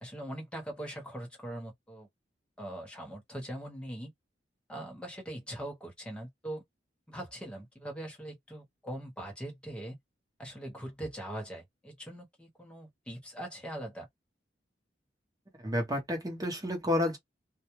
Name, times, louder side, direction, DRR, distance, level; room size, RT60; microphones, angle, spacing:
voice 1, 0.0-2.1 2.6-4.1 4.7-6.6 7.1-10.0 10.4-14.1, right 1 dB, 5° left, 0.9 m, -41 dB
voice 2, 15.6-17.2, left 1 dB, 20° right, 0.9 m, -30 dB
2.2 x 2.1 x 3.0 m
head